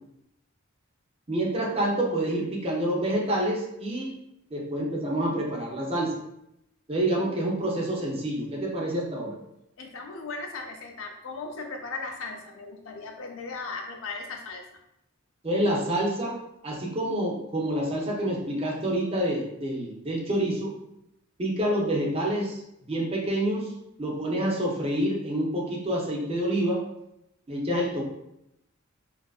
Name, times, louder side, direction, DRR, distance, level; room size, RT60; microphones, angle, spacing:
voice 1, 1.3-4.1 4.5-6.1 6.9-9.4 15.4-16.4 16.6-20.7 21.4-23.7 24.0-26.8 27.5-28.0, right 1 dB, 30° right, -2 dB, 0.6 m, -27 dB
voice 2, 9.8-14.6, left 4 dB, 70° left, 3 dB, 0.5 m, -37 dB
2.6 x 2.4 x 2.4 m, 0.82 s
head